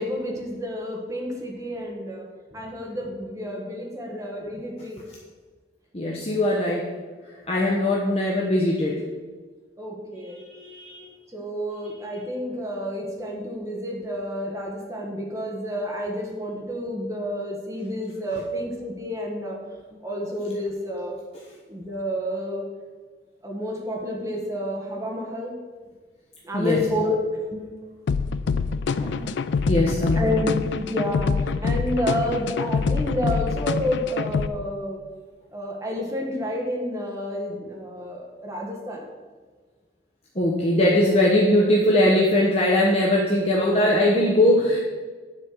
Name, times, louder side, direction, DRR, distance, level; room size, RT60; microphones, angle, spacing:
voice 1, 0.0-5.0 9.8-10.4 11.3-19.6 19.9-21.2 21.7-22.7 23.4-25.5 26.4-27.2 27.5-27.8 30.1-35.0 35.5-39.1, equal, 15° right, -1 dB, 1.4 m, -30 dB
voice 2, 5.9-6.9 7.5-9.0 10.5-11.0 26.5-26.8 28.9-29.3 29.6-30.3 40.3-44.8, left 1 dB, 35° left, -3 dB, 0.9 m, -21 dB
sound 1, 28.1-34.5, left 5 dB, 85° left, 0.4 m, -25 dB
9.7 x 4.3 x 6.4 m, 1.4 s
head